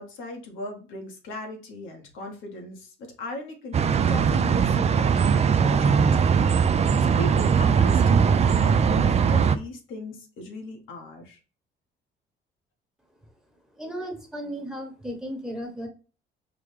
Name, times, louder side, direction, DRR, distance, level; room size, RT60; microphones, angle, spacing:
voice 1, 0.0-6.3 7.0-11.4, left 2 dB, 85° left, 2 dB, 1.1 m, -38 dB
sound 1, 3.7-9.6, right 6 dB, 35° right, 0.4 m, -20 dB
voice 2, 13.8-15.9, equal, 5° right, 3 dB, 1.1 m, -35 dB
4.8 x 2.3 x 3.2 m, 0.35 s
cardioid pair, 90°, 20 cm